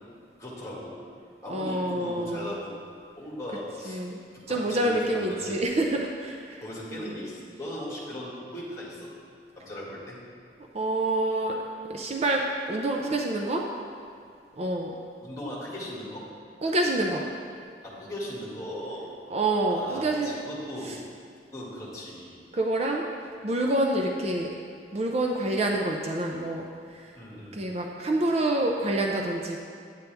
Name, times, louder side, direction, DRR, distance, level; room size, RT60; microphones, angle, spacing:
voice 1, 0.4-1.0 1.4-2.8 3.2-4.0 4.5-5.6 6.6-9.1 9.6-10.2 15.2-16.2 17.8-19.1 19.7-20.9 21.5-22.4 27.2-27.6, equal, 20° left, -6 dB, 2.0 m, -38 dB
voice 2, 1.5-2.5 3.9-4.2 4.5-6.6 6.9-7.2 10.7-11.5 11.9-13.6 14.6-14.9 16.6-17.3 19.3-20.3 22.5-23.0 23.4-24.5 24.9-26.7 27.5-29.6, right 1 dB, 35° right, 1 dB, 0.5 m, -27 dB
9.0 x 8.3 x 3.4 m, 2.3 s
head